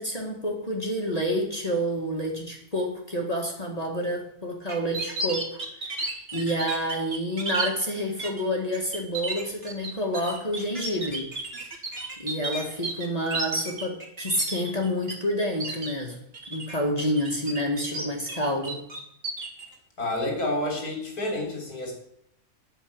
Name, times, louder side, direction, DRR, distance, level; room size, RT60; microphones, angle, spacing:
voice 1, 0.0-11.3 12.2-16.2 16.5-18.8, equal, 25° left, 0 dB, 1.8 m, -29 dB
sound 1, 4.7-7.7 8.2-8.4 8.7-15.1 15.4-15.9 16.3-16.7 17.2-18.4 18.6-19.6, right 2 dB, 40° right, 2.1 m, -33 dB
voice 2, 20.0-21.9, left 1 dB, 90° left, 0 dB, 4.1 m, -29 dB
9.3 x 6.6 x 8.6 m, 0.74 s
omnidirectional pair, 1.6 m